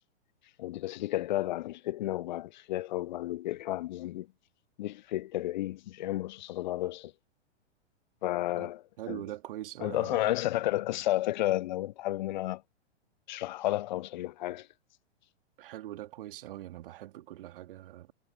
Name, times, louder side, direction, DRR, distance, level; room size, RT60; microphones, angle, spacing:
voice 1, 0.6-4.3 4.8-7.1 8.2-9.2 9.8-12.6 13.3-14.7, left 15 dB, 40° left, 0.5 m, -32 dB
voice 2, 9.0-10.3 15.6-18.1, right 14 dB, 50° right, 2.5 m, -42 dB
figure-of-eight pair, 105°, 35 cm